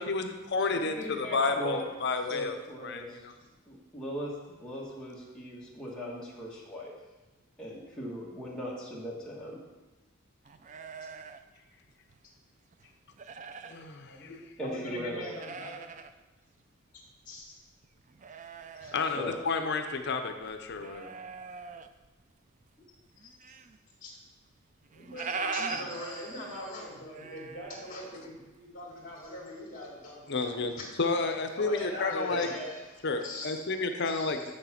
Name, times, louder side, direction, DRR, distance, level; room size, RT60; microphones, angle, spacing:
voice 1, 0.0-2.6 2.8-3.0 13.7-14.3 18.9-21.1 30.3-30.7 31.0-32.5 33.0-34.5, left 4 dB, 55° left, 6 dB, 0.7 m, -31 dB
voice 2, 0.6-1.9 2.3-2.4 13.6-14.4 14.6-15.9 16.9-17.6 18.8-18.9 23.4-23.5 24.0-24.1 24.9-30.9 31.5-33.7 34.0-34.5, left 1 dB, 40° left, -4 dB, 2.3 m, -41 dB
voice 3, 2.3-3.3 3.7-6.9 7.6-9.6 14.6-15.4 19.1-19.4, equal, 5° left, -6 dB, 1.4 m, -39 dB
sound 1, 10.4-12.4 12.7-13.9 14.3-14.4 15.0-16.1 16.5-16.6 17.0-20.0 20.3-22.2 22.6-23.8 24.1-24.2 24.4-24.5 24.7-28.6 28.9-29.4, right 5 dB, 35° right, 0.4 m, -42 dB
7.1 x 6.5 x 5.8 m, 1.1 s
head